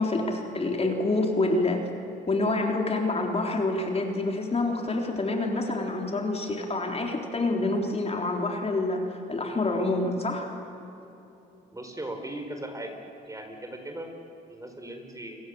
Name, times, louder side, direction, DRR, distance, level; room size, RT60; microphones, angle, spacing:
voice 1, 0.0-1.8 2.3-10.5, left 2 dB, 30° left, 2 dB, 3.7 m, -27 dB
voice 2, 11.7-12.9 13.3-14.1 14.5-15.4, right 1 dB, 15° right, 5 dB, 4.7 m, -38 dB
29.5 x 24.0 x 7.9 m, 3.0 s
cardioid pair, 90°, 20 cm